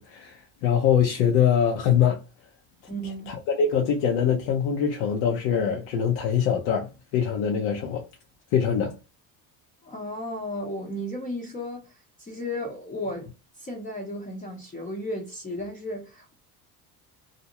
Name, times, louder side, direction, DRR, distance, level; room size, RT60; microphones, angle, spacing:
voice 1, 0.0-2.2 3.3-8.0 8.5-8.9, left 8 dB, 80° left, 0.7 m, -23 dB
voice 2, 2.9-3.3 9.8-16.3, left 1 dB, 20° left, 0.6 m, -34 dB
2.6 x 2.0 x 2.8 m
supercardioid pair, 95°, 43 cm